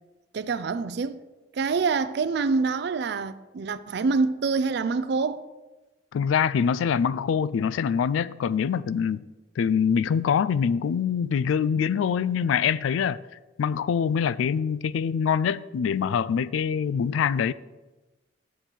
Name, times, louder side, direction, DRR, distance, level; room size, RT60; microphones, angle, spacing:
voice 1, 0.3-1.2 1.5-5.4, right 4 dB, 55° right, 0.4 m, -26 dB
voice 2, 6.1-9.2 9.6-13.2 13.6-17.5, left 7 dB, 85° left, 0.3 m, -24 dB
7.3 x 4.5 x 6.7 m
head